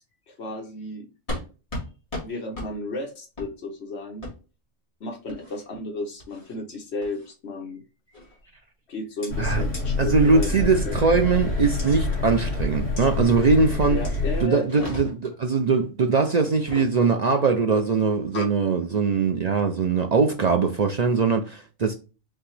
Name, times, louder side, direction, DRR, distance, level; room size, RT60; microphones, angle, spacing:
voice 1, 0.3-1.1 2.2-4.3 5.0-7.8 8.9-10.5 10.9-11.0 13.9-14.9 18.3-18.5 19.9-20.0, left 2 dB, 65° left, 1.3 m, -33 dB
sound 1, 1.3-1.4 1.7-1.9 2.1-2.3 2.5-2.7 3.4-3.5 4.2-4.3 5.3-5.6 6.2-6.5 7.0-7.3 8.1-8.4 9.2-9.3 9.7-9.8 10.4-10.5 11.8-12.0 13.0-13.1 14.0-14.2 14.6-15.3 16.5-16.9, left 1 dB, 30° left, 2.0 m, -35 dB
sound 2, 9.3-14.4, left 3 dB, 85° left, 2.5 m, -26 dB
voice 2, 10.0-14.0 14.4-21.9, right 4 dB, 60° right, 0.4 m, -21 dB
5.4 x 2.9 x 3.2 m
omnidirectional pair, 1.2 m